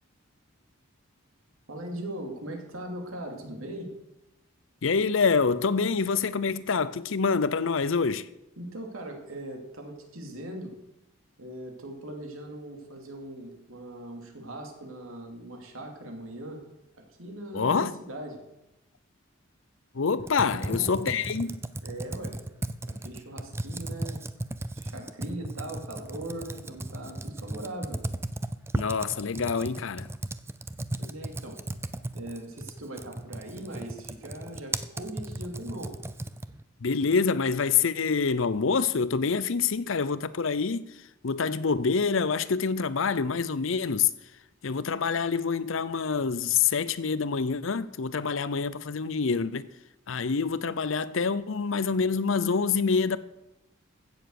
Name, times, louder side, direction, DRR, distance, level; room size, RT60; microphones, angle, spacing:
voice 1, 1.7-3.9 8.6-10.7 11.4-16.6 17.2-18.4 20.6-21.0 21.8-22.4 22.8-24.2 24.8-28.0 31.0-31.6 32.1-35.9, right 1 dB, 80° right, 2.8 m, -40 dB
voice 2, 4.8-8.3 17.5-17.9 19.9-21.6 28.7-30.1 36.8-40.9 41.2-44.1 44.6-49.7 50.1-53.2, left 5 dB, 70° left, 0.6 m, -26 dB
Computer keyboard, 20.2-36.6, right 1 dB, 10° right, 0.4 m, -36 dB
15.5 x 7.3 x 6.5 m
head